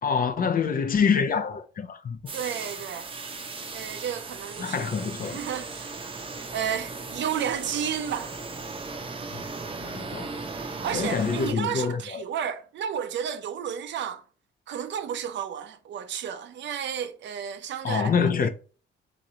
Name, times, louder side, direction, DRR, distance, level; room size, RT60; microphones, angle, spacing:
voice 1, 0.0-2.2 4.6-5.4 9.3-9.4 9.8-10.3 10.9-12.2 17.8-18.5, left 6 dB, 45° left, 0.7 m, -26 dB
sound 1, 2.3-11.5, right 3 dB, 25° right, 0.7 m, -37 dB
voice 2, 2.3-3.1 3.7-5.9 6.4-8.3 10.8-14.2 14.7-18.5, right 8 dB, 65° right, 0.6 m, -32 dB
3.8 x 3.1 x 4.1 m
cardioid pair, 90°, 20 cm